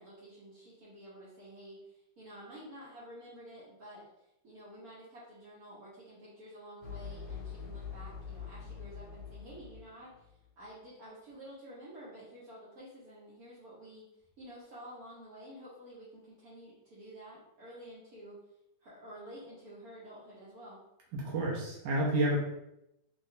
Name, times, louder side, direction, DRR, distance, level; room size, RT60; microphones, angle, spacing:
voice 1, 0.0-14.1 14.4-18.4 18.8-20.8, right 1 dB, 60° right, -9 dB, 1.2 m, -50 dB
sound 1, 6.8-10.4, left 6 dB, 75° left, 1.1 m, -44 dB
voice 2, 21.1-22.4, right 1 dB, 85° right, -4 dB, 1.3 m, -30 dB
3.1 x 2.8 x 2.6 m, 0.84 s
omnidirectional pair, 1.9 m